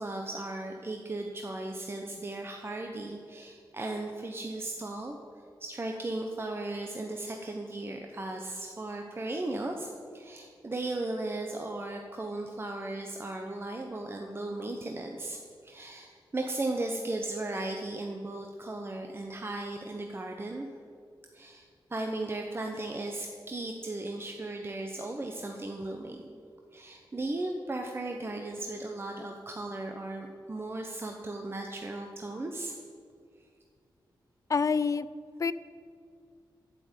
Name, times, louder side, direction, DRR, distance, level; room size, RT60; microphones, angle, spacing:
voice 1, 0.0-5.2 5.6-20.7 21.3-26.3 26.7-32.8, right 2 dB, 30° right, 2 dB, 0.9 m, -36 dB
voice 2, 34.5-35.1 35.4-35.5, left 5 dB, 45° left, 16 dB, 0.4 m, -26 dB
8.9 x 7.5 x 8.8 m, 2.3 s
wide cardioid pair, 90°, 8 cm